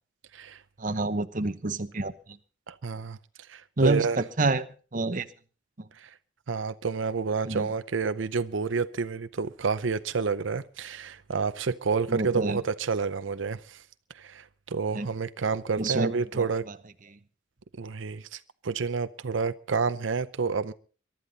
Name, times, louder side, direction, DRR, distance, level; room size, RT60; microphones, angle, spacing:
voice 1, 0.8-2.4 3.8-4.7 4.9-5.3 5.8-5.9 7.5-7.7 12.1-12.6 14.9-15.1 15.8-16.7 17.1-17.2, right 2 dB, 45° right, 1.0 m, -28 dB
voice 2, 2.7-3.2 3.5-4.2 5.9-6.1 6.5-13.8 14.1-16.7 17.8-20.7, right 5 dB, 90° right, 0.6 m, -29 dB
22.5 x 12.0 x 4.0 m
head